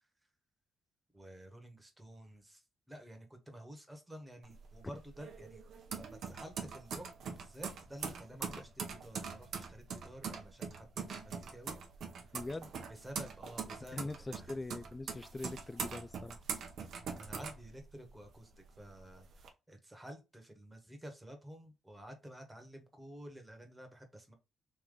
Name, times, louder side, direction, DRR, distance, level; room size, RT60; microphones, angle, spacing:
voice 1, 1.1-5.6 5.9-12.3 12.9-14.1 14.4-14.5 17.1-24.3, equal, 10° right, 1.3 m, -51 dB
sound 1, 4.4-18.3 18.6-19.5, right 6 dB, 65° right, 0.8 m, -43 dB
voice 2, 12.3-12.7 13.9-16.4, left 2 dB, 20° left, 0.3 m, -42 dB
3.3 x 3.0 x 3.8 m
cardioid pair, 90°, 0 cm